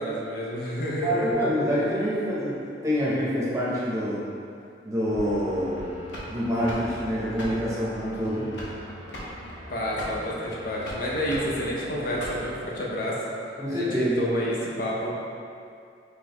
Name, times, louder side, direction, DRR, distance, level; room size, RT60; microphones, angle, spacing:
voice 1, 0.0-1.4 9.7-13.2 13.7-15.2, equal, 55° left, -4 dB, 0.6 m, -29 dB
voice 2, 1.0-4.3 4.8-5.9 6.3-8.5 13.6-14.2, equal, 20° right, -8 dB, 0.8 m, -26 dB
sound 1, 5.1-12.8, equal, 85° left, 0.8 m, -39 dB
3.8 x 3.1 x 2.9 m, 2.4 s
head